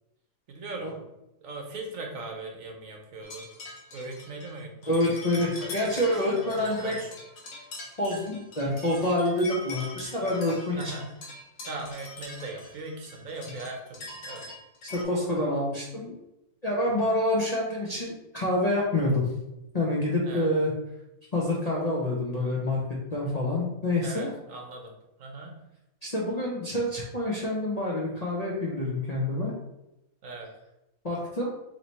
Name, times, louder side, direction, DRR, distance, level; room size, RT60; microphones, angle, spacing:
voice 1, 0.5-1.0 1.4-3.5 3.9-4.9 5.6-5.7 6.0-6.1 6.6-7.1 10.7-11.2 11.7-14.5 20.2-20.5 23.3-23.5 24.0-24.9 25.2-25.6 30.2-30.5, right 3 dB, 65° right, 2 dB, 1.1 m, -39 dB
sound 1, 3.2-15.0, left 2 dB, 70° left, 1.3 m, -43 dB
voice 2, 4.9-7.0 8.0-11.0 14.8-16.1 16.6-19.3 19.7-20.7 21.3-22.8 23.1-24.3 26.0-29.5 31.0-31.6, left 1 dB, 40° left, -6 dB, 0.6 m, -27 dB
3.2 x 2.9 x 4.1 m, 0.88 s
omnidirectional pair, 1.6 m